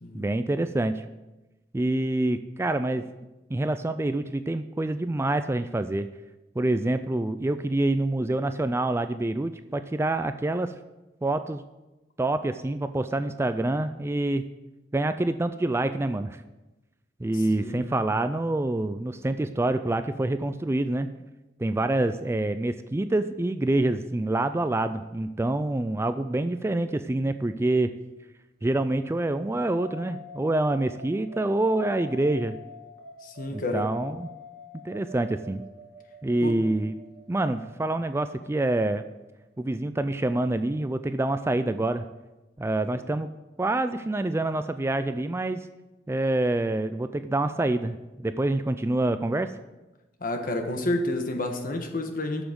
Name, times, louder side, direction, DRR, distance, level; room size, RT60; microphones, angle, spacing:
voice 1, 0.1-1.0 1.7-3.1 3.5-6.1 6.6-10.7 11.2-11.6 12.2-14.5 14.9-16.4 17.2-21.1 21.6-27.9 28.6-32.6 33.5-34.3 34.8-35.6 36.2-36.9 37.3-39.0 39.6-42.0 42.6-43.3 43.6-45.7 46.1-49.5, right 2 dB, 15° right, 10 dB, 0.3 m, -26 dB
voice 2, 17.5-17.9 33.2-33.9 36.4-36.6 50.2-52.4, left 1 dB, 50° left, 4 dB, 1.4 m, -30 dB
sound 1, 29.6-39.8, left 3 dB, 55° right, 1.6 m, -46 dB
8.7 x 7.1 x 7.9 m, 1.1 s
head